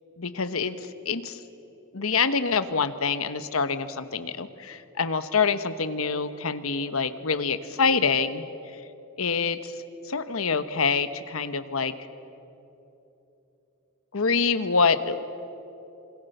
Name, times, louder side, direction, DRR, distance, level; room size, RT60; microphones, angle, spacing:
voice 1, 0.2-0.8 1.0-1.4 1.9-8.4 8.7-8.8 9.2-9.7 10.0-11.9 14.1-15.2, left 5 dB, 90° left, 11 dB, 1.2 m, -26 dB
27.0 x 25.0 x 6.8 m, 3.0 s
head